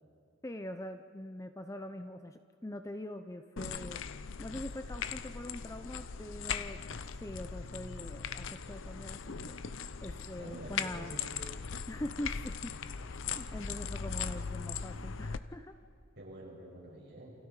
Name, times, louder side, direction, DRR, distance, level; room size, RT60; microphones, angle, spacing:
voice 1, 0.4-4.0 4.4-6.8 7.2-9.6 10.0-11.1 11.9-12.7 13.1-15.7, left 1 dB, 15° left, 8 dB, 0.6 m, -43 dB
sound 1, 3.6-15.4, left 6 dB, 80° left, 0.7 m, -39 dB
voice 2, 10.4-11.4 16.2-17.3, right 1 dB, 55° right, -4 dB, 7.3 m, -47 dB
29.0 x 26.0 x 4.9 m, 2.4 s
head